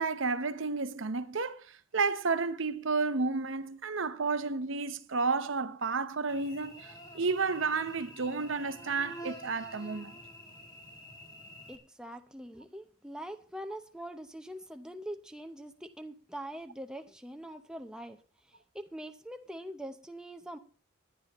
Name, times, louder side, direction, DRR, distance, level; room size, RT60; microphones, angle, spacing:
voice 1, 0.0-1.6 1.9-10.1, right 4 dB, 70° right, 0.8 m, -31 dB
Cricket / Buzz, 6.3-11.8, equal, 20° left, 2.2 m, -48 dB
voice 2, 11.7-18.2 18.7-20.6, right 1 dB, 5° right, 0.6 m, -43 dB
19.0 x 11.0 x 3.0 m
head